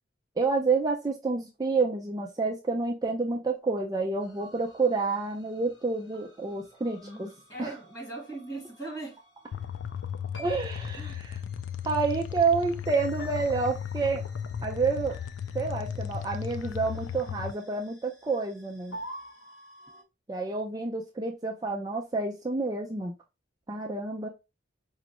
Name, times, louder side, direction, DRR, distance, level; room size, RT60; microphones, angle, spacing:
voice 1, 0.4-7.0 7.6-7.7 10.4-11.4 11.8-14.2 14.6-15.1 15.5-19.0 20.3-23.1 23.7-24.3, right 4 dB, 20° right, 0.4 m, -29 dB
sound 1, 4.2-20.0, equal, 60° left, 1.6 m, -51 dB
voice 2, 7.0-9.2 10.9-11.2, right 2 dB, 20° left, 2.3 m, -40 dB
sound 2, 9.5-17.5, left 8 dB, 80° left, 0.3 m, -36 dB
5.0 x 2.4 x 2.9 m
head